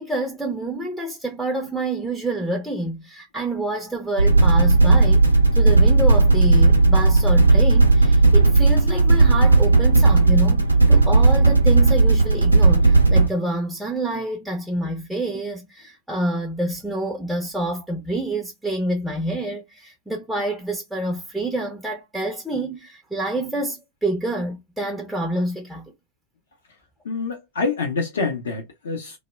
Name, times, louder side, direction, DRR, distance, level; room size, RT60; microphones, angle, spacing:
voice 1, 0.0-5.2 5.6-25.9, right 1 dB, ahead, 0.5 m, -27 dB
sound 1, 4.2-13.3, right 3 dB, 85° right, 0.5 m, -15 dB
voice 2, 27.0-29.2, left 4 dB, 65° left, 0.6 m, -26 dB
2.1 x 2.1 x 3.1 m
figure-of-eight pair, 90°, 0 cm